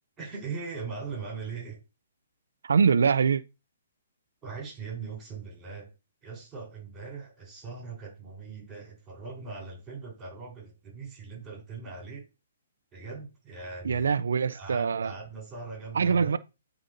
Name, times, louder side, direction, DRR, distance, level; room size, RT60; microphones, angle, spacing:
voice 1, 0.2-1.8 4.4-5.9 6.2-12.2 12.9-14.1 14.5-16.4, right 4 dB, 15° right, 3.5 m, -40 dB
voice 2, 2.6-3.4 13.8-15.1 15.9-16.4, right 6 dB, 80° right, 0.3 m, -24 dB
9.7 x 3.9 x 2.5 m
hypercardioid pair, 160°, 0 cm